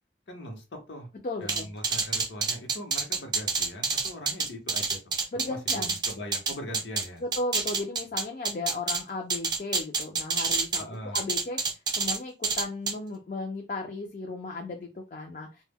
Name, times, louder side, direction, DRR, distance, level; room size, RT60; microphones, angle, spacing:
voice 1, 0.3-1.1 1.4-5.1 5.4-7.2 10.8-11.2, equal, 80° left, 3 dB, 0.8 m, -41 dB
voice 2, 1.2-1.7 5.3-6.0 7.2-15.6, left 2 dB, 45° left, 1 dB, 0.4 m, -35 dB
sound 1, 1.5-7.0 7.3-9.0 9.3-10.8 11.1-12.2 12.4-12.9, right 4 dB, 25° right, 0.4 m, -27 dB
2.1 x 2.0 x 3.4 m, 0.28 s
head